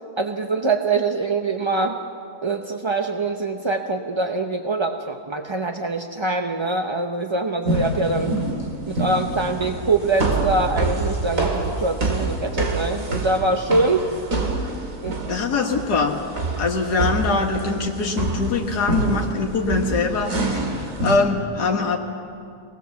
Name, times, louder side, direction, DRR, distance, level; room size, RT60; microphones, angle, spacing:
voice 1, 0.2-2.0 2.4-8.3 8.9-14.1 15.0-15.2, right 3 dB, 30° right, 4 dB, 0.6 m, -23 dB
sound 1, 7.6-21.2, right 2 dB, 55° right, 2.9 m, -26 dB
voice 2, 15.3-16.2 16.6-22.0, left 4 dB, 85° left, 1 dB, 2.1 m, -23 dB
24.5 x 19.0 x 7.1 m, 2.4 s
omnidirectional pair, 1.7 m